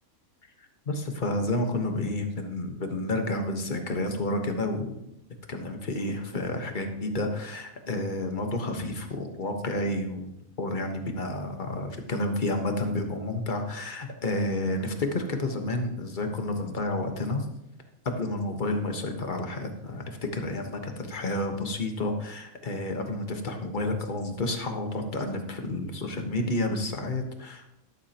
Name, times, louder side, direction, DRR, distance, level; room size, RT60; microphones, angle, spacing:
voice 1, 0.6-5.1 5.5-10.3 10.6-17.5 18.0-27.7, left 2 dB, 35° left, 4 dB, 1.3 m, -30 dB
12.5 x 12.0 x 2.9 m, 0.83 s
omnidirectional pair, 1.5 m